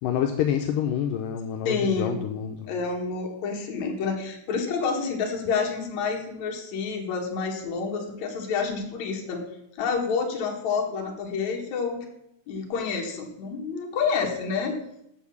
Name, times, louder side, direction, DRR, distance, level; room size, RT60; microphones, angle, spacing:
voice 1, 0.0-2.7, left 9 dB, 80° left, 4 dB, 2.2 m, -27 dB
voice 2, 1.6-2.2 2.7-9.4 9.8-12.0 12.5-14.8, left 5 dB, 60° left, 2 dB, 2.7 m, -28 dB
8.3 x 6.6 x 7.1 m, 0.79 s
omnidirectional pair, 4.0 m